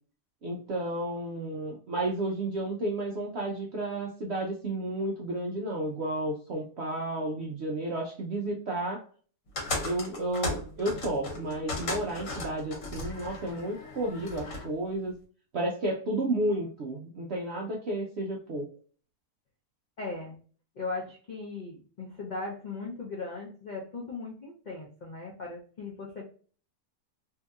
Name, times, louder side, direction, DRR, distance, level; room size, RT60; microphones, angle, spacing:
voice 1, 0.4-9.0 9.8-15.2 15.5-18.7, right 1 dB, 70° right, -1 dB, 0.6 m, -32 dB
sound 1, 9.5-14.7, left 2 dB, 55° left, 1.2 m, -36 dB
voice 2, 20.0-20.4 20.8-26.2, left 3 dB, 70° left, -2 dB, 0.4 m, -38 dB
2.8 x 2.7 x 2.3 m, 0.42 s
omnidirectional pair, 1.7 m